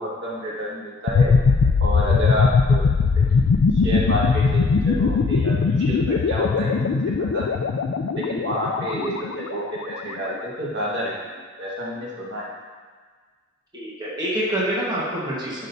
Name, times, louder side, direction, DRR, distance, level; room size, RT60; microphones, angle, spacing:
voice 1, 0.0-1.3 1.8-2.8 3.3-7.0 7.3-7.7 8.1-11.1 11.6-12.4, equal, 55° right, -5 dB, 1.7 m, -29 dB
sound 1, 1.1-9.9, left 4 dB, 70° left, 0.4 m, -20 dB
voice 2, 13.7-15.7, right 1 dB, 20° right, -7 dB, 1.3 m, -26 dB
11.0 x 6.3 x 2.7 m, 1.5 s
head